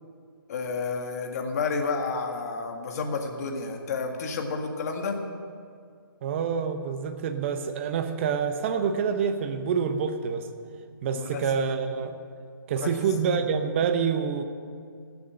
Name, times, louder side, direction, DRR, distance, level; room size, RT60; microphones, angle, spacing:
voice 1, 0.5-5.2 11.1-11.5 12.8-12.9, left 4 dB, 45° left, 3 dB, 1.8 m, -30 dB
voice 2, 6.2-10.5 11.0-12.2 12.7-14.4, right 6 dB, 30° right, 8 dB, 0.9 m, -27 dB
18.0 x 7.0 x 7.6 m, 2.3 s
hypercardioid pair, 155°, 12 cm